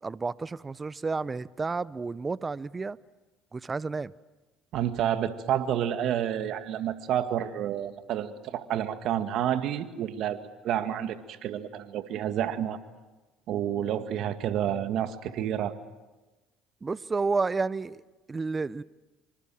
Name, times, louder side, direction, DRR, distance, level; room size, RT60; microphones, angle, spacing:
voice 1, 0.0-3.0 3.5-4.1 16.8-18.0 18.3-18.8, right 4 dB, 25° right, 0.8 m, -31 dB
voice 2, 4.7-10.4 10.6-12.8 13.5-15.8, right 10 dB, 65° right, 2.0 m, -29 dB
26.0 x 25.0 x 7.7 m
hypercardioid pair, 70°, 0 cm